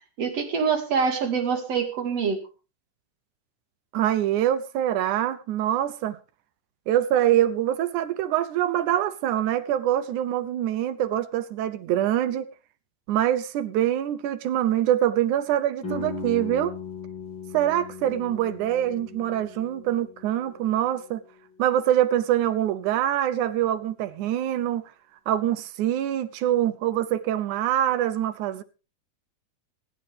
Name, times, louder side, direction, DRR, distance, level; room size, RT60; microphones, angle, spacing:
voice 1, 0.2-2.4, right 6 dB, 55° right, 3.1 m, -25 dB
voice 2, 3.9-6.2 6.9-12.5 13.1-16.8 17.5-21.2 21.6-24.9 25.3-28.6, right 11 dB, 75° right, 2.2 m, -24 dB
sound 1, 15.8-21.6, left 3 dB, 35° left, 6.9 m, -38 dB
25.5 x 8.8 x 3.4 m
omnidirectional pair, 3.6 m